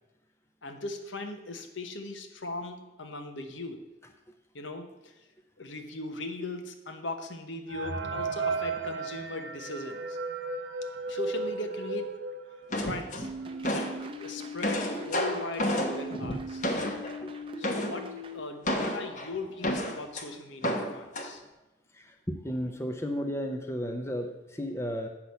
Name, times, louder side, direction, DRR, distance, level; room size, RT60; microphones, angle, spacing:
voice 1, 0.6-3.8 4.5-5.1 5.6-10.2 11.1-12.1 12.8-13.3 13.7-16.7 17.6-21.4, left 2 dB, 75° left, 6 dB, 1.1 m, -39 dB
sound 1, 7.7-13.1 13.6-13.7 13.9-14.0 14.7-14.8 15.2-15.5, right 3 dB, 70° right, 0.7 m, -35 dB
sound 2, 12.7-14.0 14.4-17.2 17.6-18.0 18.6-20.2 20.6-21.3, equal, 40° left, 1.1 m, -31 dB
sound 3, 13.2-18.4, left 1 dB, 25° right, 0.7 m, -40 dB
voice 2, 22.3-25.1, equal, 15° left, 4 dB, 0.7 m, -33 dB
8.0 x 6.0 x 7.0 m, 1.0 s
head